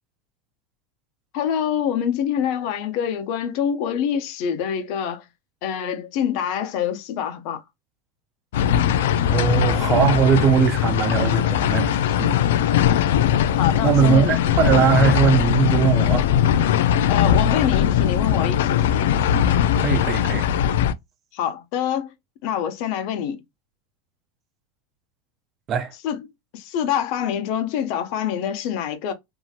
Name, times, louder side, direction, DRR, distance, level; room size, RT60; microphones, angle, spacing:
voice 1, 1.3-5.2 5.6-7.6 13.6-14.4 17.1-19.1 21.3-22.1 22.4-23.4 26.0-26.2 26.5-29.1, left 9 dB, 60° left, 0.8 m, -25 dB
sound 1, 8.5-20.9, left 10 dB, 75° left, 0.3 m, -20 dB
voice 2, 9.3-12.4 13.8-16.3 19.8-20.5 25.7-25.9, right 7 dB, 35° right, 0.7 m, -20 dB
2.8 x 2.8 x 2.4 m
hypercardioid pair, 110°, 0 cm